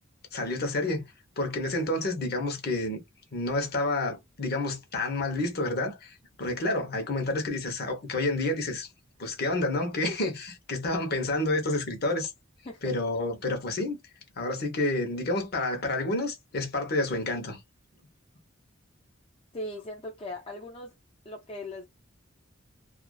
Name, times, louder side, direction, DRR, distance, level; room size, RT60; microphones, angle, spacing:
voice 1, 0.3-1.1 1.4-3.0 3.3-8.9 9.2-12.3 12.8-14.0 14.4-17.6, left 2 dB, 50° left, 0.8 m, -29 dB
voice 2, 19.5-20.9 21.2-21.9, left 1 dB, 30° left, 0.4 m, -38 dB
2.4 x 2.3 x 2.3 m
head